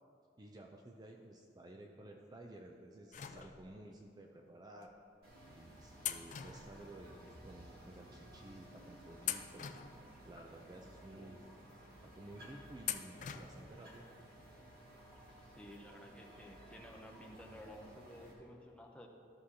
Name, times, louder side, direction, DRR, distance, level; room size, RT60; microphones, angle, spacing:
voice 1, 0.4-4.9 5.5-9.7 10.2-11.4 12.0-14.1, right 1 dB, 20° right, 2 dB, 0.4 m, -54 dB
sound 1, 3.1-4.0 4.8-4.9 6.0-7.4 7.7-7.8 8.6-8.8 9.2-10.5 11.0-11.1 12.8-13.8 14.1-14.2 15.4-15.5 15.8-15.9, left 10 dB, 45° left, 0.3 m, -43 dB
sound 2, 5.2-18.3, right 1 dB, 55° right, 2.0 m, -57 dB
voice 2, 15.5-19.1, equal, 5° left, 0 dB, 0.7 m, -54 dB
13.5 x 6.2 x 2.8 m, 2.6 s
head